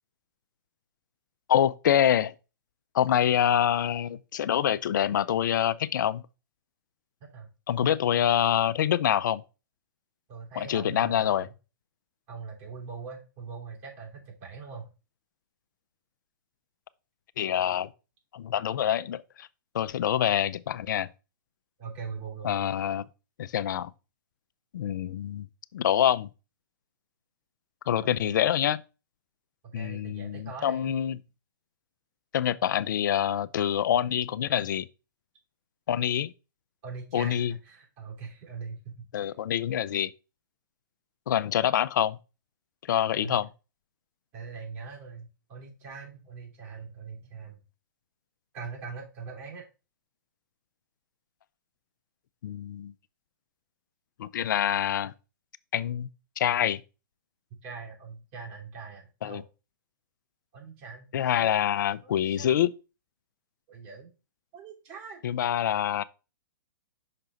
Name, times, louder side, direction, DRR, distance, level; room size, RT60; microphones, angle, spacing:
voice 1, 1.5-2.3 2.9-6.2 7.7-9.4 10.6-11.5 17.4-17.9 18.3-19.5 19.7-21.1 22.4-23.0 23.4-23.9 24.7-25.5 25.7-26.3 27.9-28.8 29.7-31.2 32.3-34.9 35.9-36.3 37.1-37.5 39.1-40.1 41.3-42.2 42.9-43.5 52.4-52.9 54.2-55.1 55.7-56.1 56.4-56.8 59.2-59.4 61.1-62.7 65.2-66.0, left 10 dB, 65° left, 0.5 m, -26 dB
voice 2, 7.8-8.3 10.3-11.5 12.3-14.9 21.8-22.6 28.0-28.4 29.6-31.0 36.8-39.3 43.2-43.4 44.3-47.6 48.5-49.7 57.6-59.4 60.5-61.1 61.4-61.6 62.0-62.6 63.7-64.1 64.5-65.2, right 5 dB, 40° right, 3.3 m, -42 dB
5.9 x 5.4 x 3.9 m
hypercardioid pair, 125°, 11 cm